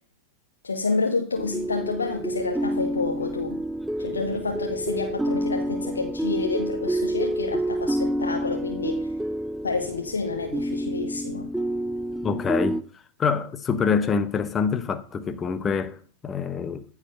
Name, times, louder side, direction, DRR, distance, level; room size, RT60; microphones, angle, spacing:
voice 1, 0.6-3.6 4.0-9.1 9.6-11.5, left 4 dB, 75° left, 1.4 m, -29 dB
sound 1, 1.4-12.8, right 1 dB, 5° right, 0.4 m, -28 dB
voice 2, 12.2-12.8 13.2-16.8, left 6 dB, 20° left, 1.0 m, -26 dB
14.5 x 4.9 x 5.5 m
figure-of-eight pair, 90°, 0 cm